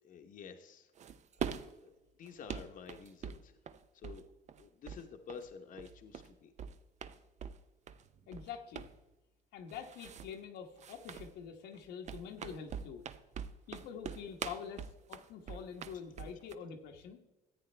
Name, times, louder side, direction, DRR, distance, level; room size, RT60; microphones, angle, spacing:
voice 1, 0.0-0.9 1.3-1.5 1.8-3.6 3.9-4.2 4.6-6.5, left 6 dB, 50° left, 5 dB, 0.9 m, -50 dB
sound 1, 1.0-1.7 2.3-4.2 4.5-5.0 5.3-6.3 6.6-7.6 7.9-8.5 8.7-9.0 9.7-10.3 10.8-11.3 11.7-16.5, right 7 dB, 45° right, 0.6 m, -43 dB
voice 2, 8.3-8.9 9.5-13.0 13.7-17.2, left 7 dB, 85° left, 3 dB, 1.2 m, -46 dB
14.0 x 8.5 x 3.3 m, 1.0 s
cardioid pair, 110°, 17 cm